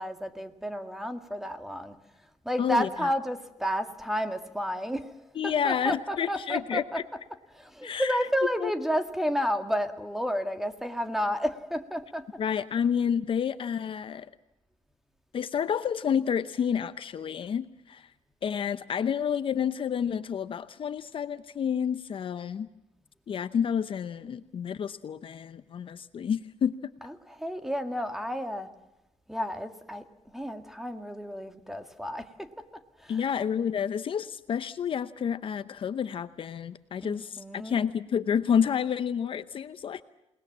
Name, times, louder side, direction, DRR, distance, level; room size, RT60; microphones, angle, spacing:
voice 1, 0.0-2.0 2.5-5.1 5.4-12.4 27.0-28.7 29.3-30.0 30.3-33.3 37.0-37.8, equal, 5° right, 8 dB, 1.7 m, -31 dB
voice 2, 2.6-3.1 5.4-7.0 7.8-8.3 8.6-8.7 12.4-14.3 15.3-18.1 18.4-22.7 23.3-26.9 33.1-40.0, left 8 dB, 50° left, 13 dB, 0.8 m, -29 dB
28.0 x 19.5 x 7.4 m, 0.94 s
cardioid pair, 120°, 12 cm